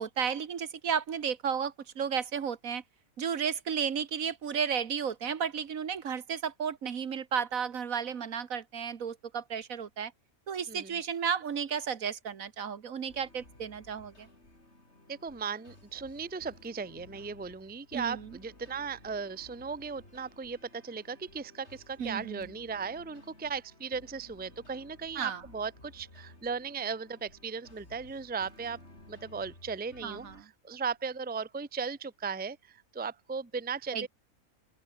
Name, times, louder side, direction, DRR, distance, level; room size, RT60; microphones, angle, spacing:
voice 1, 0.0-2.8 3.2-10.1 10.5-14.3 17.9-18.4 22.0-22.5 25.2-25.4 30.0-30.5 33.9-34.1, right 7 dB, 70° right, 1.7 m, -33 dB
sound 1, 13.1-30.4, left 2 dB, 50° left, 6.4 m, -56 dB
voice 2, 15.1-28.8 29.1-34.1, right 5 dB, 10° right, 0.6 m, -37 dB
open air
omnidirectional pair, 1.5 m